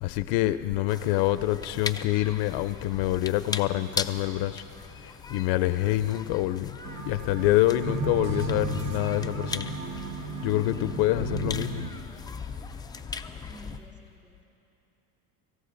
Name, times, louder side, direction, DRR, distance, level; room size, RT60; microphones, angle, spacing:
voice 1, 0.0-4.6 5.0-6.8 7.1-9.7 10.4-11.8, left 15 dB, 80° left, 0.6 m, -26 dB
sound 1, 0.9-13.8, left 5 dB, 10° left, 0.3 m, -39 dB
sound 2, 6.8-11.9, right 3 dB, 85° right, 1.2 m, -34 dB
voice 2, 12.4-14.4, right 1 dB, 15° right, 2.9 m, -53 dB
26.5 x 14.5 x 2.6 m
cardioid pair, 110°, 39 cm